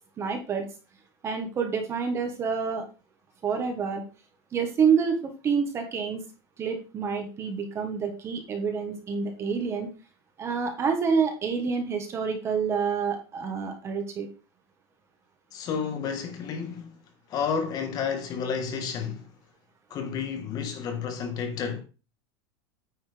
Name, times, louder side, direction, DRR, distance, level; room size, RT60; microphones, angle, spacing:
voice 1, 0.2-0.7 1.2-2.8 3.4-4.0 4.5-5.2 5.4-6.2 6.6-9.9 10.4-14.3, right 6 dB, 20° right, 1.5 m, -27 dB
voice 2, 15.5-17.0 17.3-19.3 19.9-21.8, left 6 dB, 30° left, 1.3 m, -31 dB
9.3 x 4.3 x 5.1 m
supercardioid pair, 165°, 13 cm